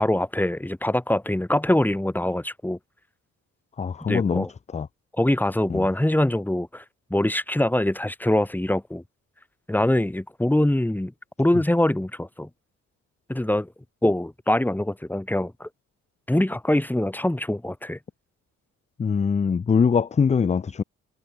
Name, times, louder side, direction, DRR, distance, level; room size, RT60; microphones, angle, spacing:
voice 1, 0.0-2.8 4.1-4.5 5.1-6.8 7.1-9.0 9.7-11.1 11.4-12.5 13.3-13.7 14.0-15.7 16.3-18.0, left 1 dB, 5° left, 2.6 m, -23 dB
voice 2, 3.8-4.5 4.7-4.9 5.7-5.8 19.0-20.8, left 6 dB, 25° left, 0.5 m, -22 dB
cardioid pair, 90°, 30 cm